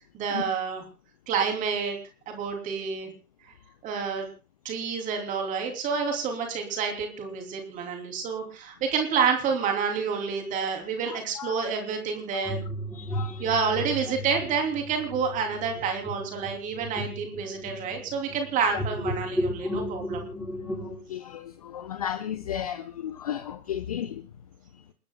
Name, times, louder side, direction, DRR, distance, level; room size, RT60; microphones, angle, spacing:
voice 1, 0.1-0.8 1.3-2.0 2.3-3.1 3.8-4.3 4.6-12.6 13.4-20.2, right 6 dB, 15° right, 3.0 m, -28 dB
voice 2, 11.1-11.7 12.3-12.5 12.9-13.5 19.6-19.7 20.8-24.3, left 10 dB, 25° left, 0.6 m, -35 dB
sound 1, 12.4-21.0, equal, ahead, 3.6 m, -34 dB
29.0 x 9.8 x 2.3 m
figure-of-eight pair, 125°, 44 cm